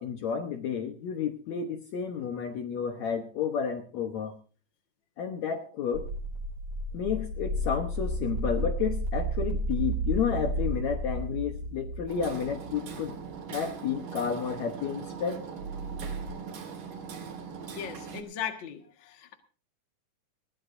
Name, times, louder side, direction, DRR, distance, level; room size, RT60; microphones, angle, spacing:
voice 1, 0.0-4.3 5.2-6.1 6.9-13.1 13.5-15.4, left 7 dB, 65° left, 6 dB, 2.2 m, -31 dB
sound 1, 5.9-13.4 15.6-16.3, right 1 dB, 40° right, 6.9 m, -32 dB
Hammer, 12.1-18.2, right 6 dB, 70° right, 3.8 m, -41 dB
voice 2, 17.7-19.3, left 9 dB, 45° left, 6 dB, 1.9 m, -38 dB
20.5 x 16.5 x 2.6 m, 0.39 s
omnidirectional pair, 3.8 m